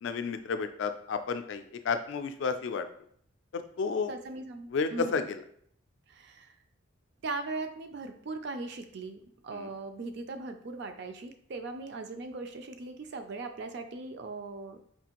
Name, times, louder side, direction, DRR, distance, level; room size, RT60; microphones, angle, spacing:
voice 1, 0.0-2.9 3.5-4.1 4.7-5.4 9.5-9.7, left 5 dB, 60° left, 9 dB, 0.3 m, -32 dB
voice 2, 4.1-5.2 6.1-6.5 7.2-14.8, right 3 dB, 55° right, 7 dB, 0.4 m, -39 dB
4.5 x 2.4 x 2.9 m, 0.63 s
head